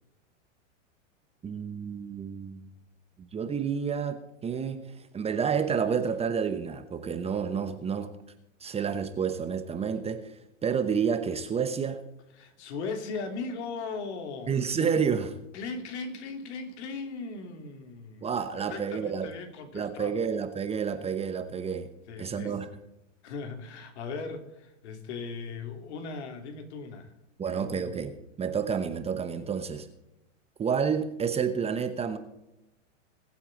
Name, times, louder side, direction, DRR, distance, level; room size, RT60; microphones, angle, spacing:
voice 1, 1.4-2.7 3.3-4.8 5.1-8.1 8.6-10.2 10.6-12.0 14.5-15.4 18.2-19.3 19.7-21.9 22.2-22.7 27.4-29.9 30.6-32.2, right 6 dB, 15° right, 9 dB, 1.0 m, -29 dB
voice 2, 12.4-14.6 15.5-18.3 18.5-20.3 22.1-22.5 23.2-27.1 27.5-27.9, left 4 dB, 60° left, 6 dB, 2.9 m, -38 dB
21.0 x 8.4 x 3.9 m, 0.89 s
hypercardioid pair, 120°, 37 cm